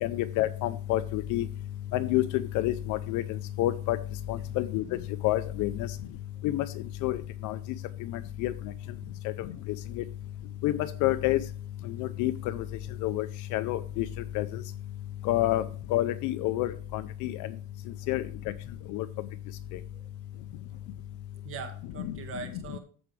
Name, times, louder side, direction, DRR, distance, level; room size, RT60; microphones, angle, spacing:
voice 1, 0.0-1.5 1.9-4.0 4.3-6.0 6.4-7.6 8.0-8.7 9.2-10.0 10.6-11.4 11.8-12.7 13.0-14.1 14.3-14.6 15.2-17.5 18.1-18.5 18.9-19.1 22.0-22.1 22.5-22.6, left 15 dB, 45° left, 14 dB, 0.5 m, -29 dB
voice 2, 21.4-22.8, right 5 dB, 30° right, 6 dB, 1.6 m, -42 dB
14.0 x 4.8 x 3.2 m, 0.41 s
cardioid pair, 150°, 42 cm